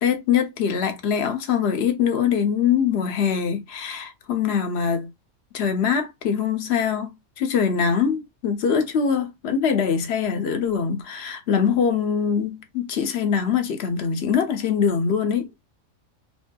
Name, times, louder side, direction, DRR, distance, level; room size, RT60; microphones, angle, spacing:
voice 1, 0.0-5.1 5.5-15.5, left 7 dB, 60° left, 0.8 m, -23 dB
3.1 x 2.6 x 2.2 m
omnidirectional pair, 1.3 m